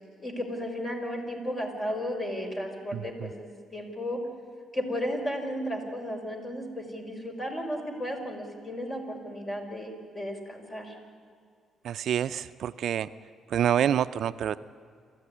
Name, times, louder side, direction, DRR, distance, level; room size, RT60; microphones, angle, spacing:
voice 1, 0.2-4.2 4.7-10.9, equal, 25° left, 3 dB, 5.1 m, -34 dB
voice 2, 11.8-13.1 13.5-14.6, right 9 dB, 70° right, 13 dB, 0.5 m, -27 dB
27.5 x 14.0 x 9.9 m, 2.2 s
cardioid pair, 90°, 0 cm